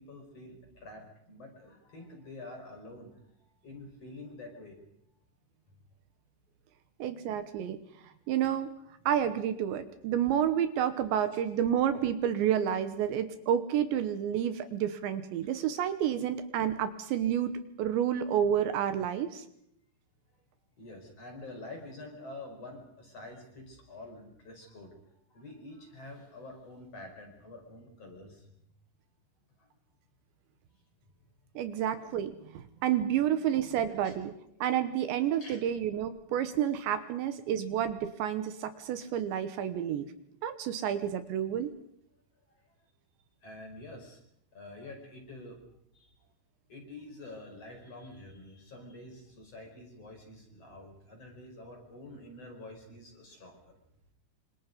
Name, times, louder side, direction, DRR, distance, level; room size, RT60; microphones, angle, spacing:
voice 1, 0.0-3.2 3.6-4.8 15.4-15.5 20.8-25.0 25.3-28.5 29.6-29.7 34.0-34.2 35.4-35.6 43.4-44.2 44.5-45.6 45.9-46.1 46.7-53.8, left 2 dB, 35° left, 3 dB, 5.6 m, -47 dB
voice 2, 7.0-7.8 8.0-8.7 9.1-17.5 17.8-19.4 31.6-34.3 34.6-40.1 40.4-41.7, right 9 dB, 75° right, 10 dB, 3.3 m, -30 dB
27.0 x 26.0 x 5.3 m, 0.76 s
omnidirectional pair, 5.5 m